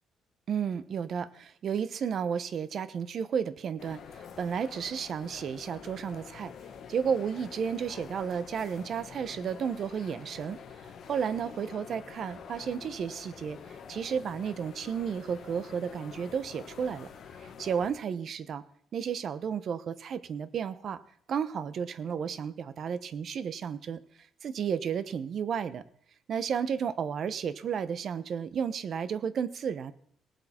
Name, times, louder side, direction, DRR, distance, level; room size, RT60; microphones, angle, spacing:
voice 1, 0.5-6.5 6.9-10.6 11.1-17.1 17.4-18.6 18.9-21.0 21.3-24.0 24.4-25.8 26.3-29.9, right 7 dB, 50° right, 14 dB, 0.8 m, -32 dB
sound 1, 3.8-17.9, left 7 dB, 60° left, 1.4 m, -47 dB
18.5 x 8.0 x 4.4 m, 0.64 s
cardioid pair, 120°, 0 cm